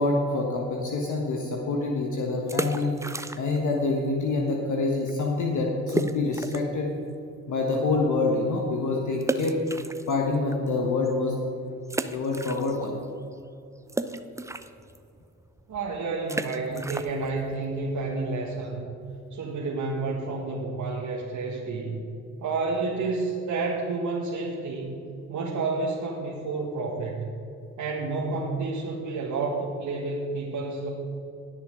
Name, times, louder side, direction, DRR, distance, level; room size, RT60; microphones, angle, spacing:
voice 1, 0.0-3.0 3.4-6.9 7.5-9.6 10.1-11.4 12.0-13.0, left 3 dB, 55° left, 0 dB, 1.5 m, -26 dB
sound 1, 2.4-3.7 4.0-4.1 4.7-4.8 5.1-5.2 5.9-6.8 7.3-7.4 9.2-10.5 11.0-11.1 11.9-13.1 13.3-18.8, right 2 dB, 10° right, 0.6 m, -34 dB
voice 2, 15.7-19.0 19.3-22.0 22.4-24.9 25.3-27.3 27.8-30.9, right 3 dB, 55° right, -3 dB, 1.7 m, -30 dB
19.5 x 6.7 x 3.8 m, 2.7 s
hypercardioid pair, 50°, 36 cm